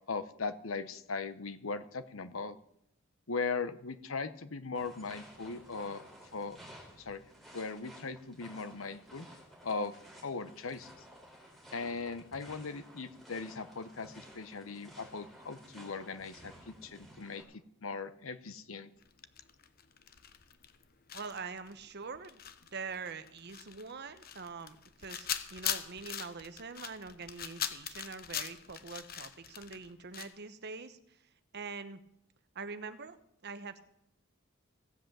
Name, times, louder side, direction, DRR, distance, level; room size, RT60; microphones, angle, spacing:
voice 1, 0.1-2.6 3.3-6.0 6.3-6.6 7.0-7.2 7.5-9.3 9.6-10.9 11.7-17.4 17.8-18.9, left 4 dB, 80° left, 13 dB, 0.9 m, -39 dB
sound 1, 4.7-17.4, equal, ahead, 4.4 m, -54 dB
sound 2, 19.0-20.8 21.1-30.3, left 9 dB, 50° left, 0.9 m, -41 dB
voice 2, 21.1-22.4 22.7-31.2 31.5-32.0 32.5-33.2 33.4-33.8, right 4 dB, 55° right, 11 dB, 1.0 m, -44 dB
16.5 x 8.0 x 7.4 m, 0.77 s
head